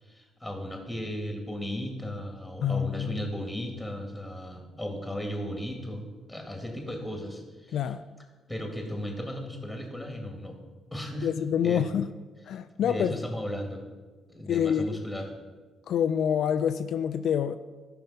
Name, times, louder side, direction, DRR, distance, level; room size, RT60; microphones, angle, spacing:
voice 1, 0.0-7.8 8.5-10.6 10.9-11.3 11.6-11.9 12.8-13.8 14.3-15.3, equal, 5° left, 3 dB, 2.1 m, -36 dB
voice 2, 2.6-3.3 7.7-8.0 11.2-12.1 12.5-13.2 14.5-15.0 15.9-17.6, left 8 dB, 70° left, 10 dB, 0.4 m, -27 dB
12.5 x 5.7 x 5.7 m, 1.3 s
cardioid pair, 95°, 0 cm